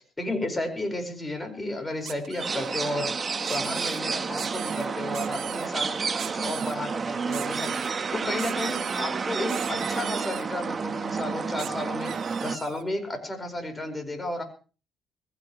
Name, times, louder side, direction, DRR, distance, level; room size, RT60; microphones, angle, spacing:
voice 1, 0.2-3.1 3.5-6.0 6.3-7.8 8.1-12.1 12.4-14.4, left 1 dB, 20° left, 5 dB, 5.2 m, -32 dB
sound 1, 2.0-2.7 3.4-4.0 4.4-4.9 5.1-5.7 6.2-6.7 7.3-7.9 8.4-9.0 9.5-10.4 11.6-11.7 12.0-12.8, right 10 dB, 75° right, 1.4 m, -39 dB
sound 2, 2.4-12.6, right 5 dB, 40° right, 1.3 m, -30 dB
21.0 x 16.5 x 3.2 m, 0.36 s
cardioid pair, 90°, 0 cm